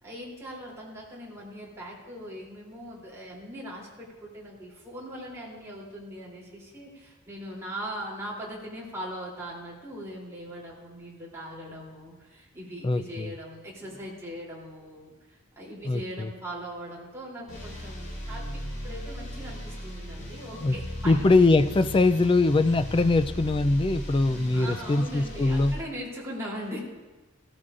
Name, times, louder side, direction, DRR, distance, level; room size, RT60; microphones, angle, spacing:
voice 1, 0.0-21.3 24.5-26.8, equal, 15° right, -6 dB, 3.2 m, -40 dB
voice 2, 12.8-13.3 15.9-16.3 20.6-20.7 21.0-25.7, left 2 dB, 25° left, 10 dB, 0.3 m, -22 dB
sound 1, 17.5-25.7, equal, 50° left, 3.1 m, -37 dB
16.5 x 13.5 x 2.5 m, 1.2 s
head